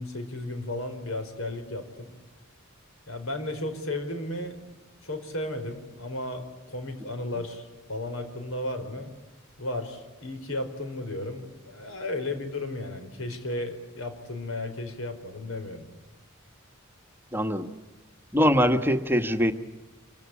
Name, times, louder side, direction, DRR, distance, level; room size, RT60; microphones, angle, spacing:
voice 1, 0.0-2.1 3.1-4.6 5.0-9.1 9.6-15.9, left 1 dB, 70° left, 8 dB, 4.8 m, -34 dB
voice 2, 17.3-17.7 18.3-19.5, equal, 10° right, 7 dB, 1.4 m, -22 dB
26.5 x 24.0 x 8.6 m, 1.1 s
head